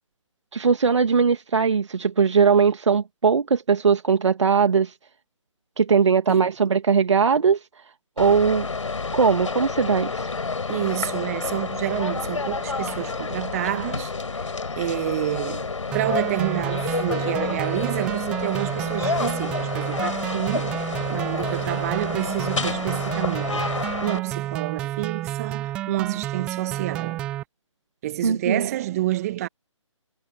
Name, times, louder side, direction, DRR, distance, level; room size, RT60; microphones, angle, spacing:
voice 1, 0.5-4.9 5.8-7.6 8.2-8.7 9.1-10.3 28.2-28.7, right 6 dB, 65° right, 2.0 m, -20 dB
sound 1, 8.2-24.2, left 4 dB, 70° left, 5.3 m, -29 dB
voice 2, 10.7-14.4 14.8-23.7 24.0-27.3 28.0-29.5, right 15 dB, 30° right, 1.3 m, -29 dB
sound 2, 15.9-27.4, right 13 dB, 5° right, 0.3 m, -30 dB
figure-of-eight pair, 145°, 17 cm